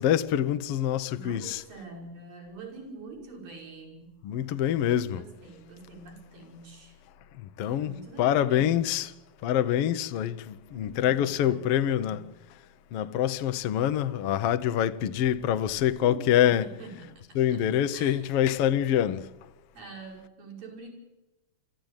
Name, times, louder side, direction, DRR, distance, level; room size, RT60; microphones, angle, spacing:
voice 1, 0.0-1.6 4.2-5.2 7.6-9.1 9.4-12.3 12.9-16.7 17.3-19.2, left 10 dB, 85° left, 1.3 m, -25 dB
voice 2, 1.1-4.2 5.1-7.0 7.8-8.7 10.7-12.3 16.0-17.6 17.9-18.4 19.7-20.9, right 3 dB, 75° right, 7.1 m, -45 dB
29.0 x 14.0 x 8.9 m
omnidirectional pair, 3.9 m